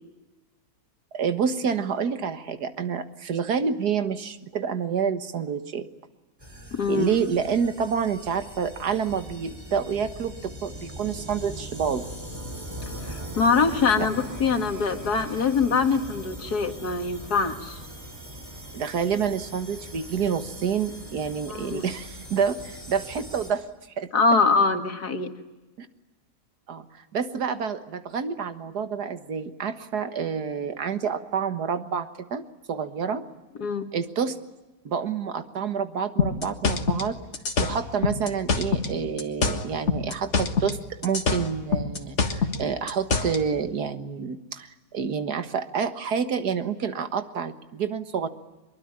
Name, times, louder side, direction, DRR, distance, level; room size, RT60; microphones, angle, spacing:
voice 1, 1.1-5.9 6.9-12.0 18.7-23.7 24.0-24.1 25.8-25.9 26.7-26.9 27.1-33.2 33.9-34.4 34.9-37.2 37.6-40.8 41.0-48.3, right 6 dB, 70° right, 10 dB, 2.0 m, -28 dB
sound 1, 6.4-23.5, equal, 20° right, 8.2 m, -40 dB
voice 2, 6.7-7.1 13.0-17.8 21.5-21.8 24.1-25.3 33.6-33.9, left 4 dB, 70° left, 6 dB, 2.6 m, -23 dB
sound 2, 36.2-38.9 39.2-40.8 41.0-43.4, left 5 dB, 45° left, 1.9 m, -25 dB
24.5 x 22.5 x 9.9 m, 1.1 s
omnidirectional pair, 1.8 m